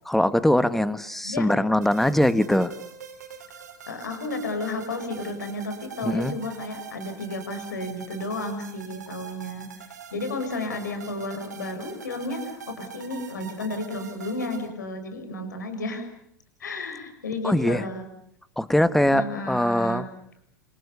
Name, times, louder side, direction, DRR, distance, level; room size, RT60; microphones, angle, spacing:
voice 1, 0.0-2.7 6.0-6.3 17.4-17.8 18.6-20.1, left 1 dB, 5° left, 15 dB, 1.5 m, -22 dB
voice 2, 1.2-1.7 3.9-9.7 10.1-16.1 16.6-18.0 19.1-20.1, left 2 dB, 70° left, 7 dB, 6.6 m, -32 dB
sound 1, 1.8-14.7, right 8 dB, 70° right, 4.4 m, -43 dB
28.0 x 27.0 x 6.9 m, 0.71 s
figure-of-eight pair, 90°, 10 cm